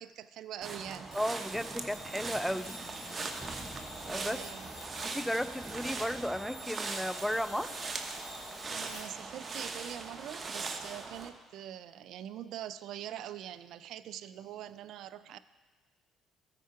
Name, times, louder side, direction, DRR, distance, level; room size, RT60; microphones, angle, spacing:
voice 1, 0.0-1.1 4.3-4.7 8.7-15.4, right 11 dB, 70° right, 14 dB, 0.3 m, -43 dB
sound 1, 0.6-11.3, right 3 dB, 35° right, 1.0 m, -40 dB
sound 2, 1.1-9.0, left 1 dB, 80° left, 2.1 m, -49 dB
voice 2, 1.1-2.7 4.1-4.4 5.0-7.9, equal, ahead, 14 dB, 0.4 m, -34 dB
sound 3, 1.5-6.5, right 1 dB, 15° right, 2.1 m, -51 dB
13.5 x 4.7 x 4.6 m, 1.4 s
hypercardioid pair, 55°, 0 cm